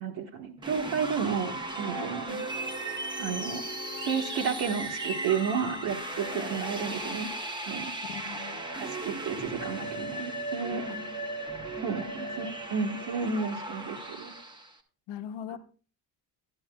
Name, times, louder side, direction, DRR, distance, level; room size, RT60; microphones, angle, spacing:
voice 1, 0.0-2.4 2.8-3.6 4.0-7.3 7.6-7.9 8.7-10.8 11.8-14.3 15.5-15.6, right 6 dB, 75° right, -1 dB, 1.4 m, -32 dB
sound 1, 0.6-14.8, right 2 dB, 10° right, 0.8 m, -37 dB
sound 2, 1.4-7.4, left 5 dB, 55° left, 1.0 m, -43 dB
voice 2, 8.1-8.6 10.9-11.0 11.9-12.2 15.1-15.6, left 9 dB, 85° left, 10 dB, 0.9 m, -41 dB
12.5 x 11.0 x 2.3 m, 0.37 s
cardioid pair, 180°, 42 cm